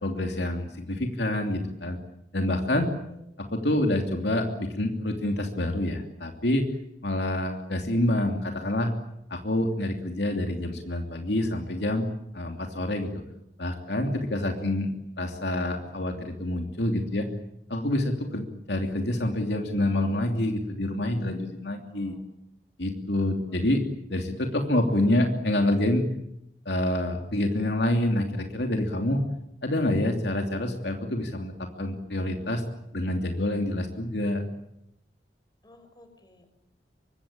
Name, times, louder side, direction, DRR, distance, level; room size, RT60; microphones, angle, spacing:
voice 1, 0.0-2.0 2.3-2.9 3.4-6.7 7.0-8.9 9.3-12.1 12.3-13.1 13.6-14.9 15.2-17.3 17.7-22.1 22.8-23.8 24.1-26.1 26.6-29.2 29.6-32.6 32.9-34.4, left 1 dB, 70° left, 3 dB, 2.9 m, -27 dB
voice 2, 21.9-22.2 35.6-36.5, left 1 dB, 25° left, 8 dB, 5.4 m, -54 dB
25.0 x 22.5 x 9.0 m, 0.80 s
head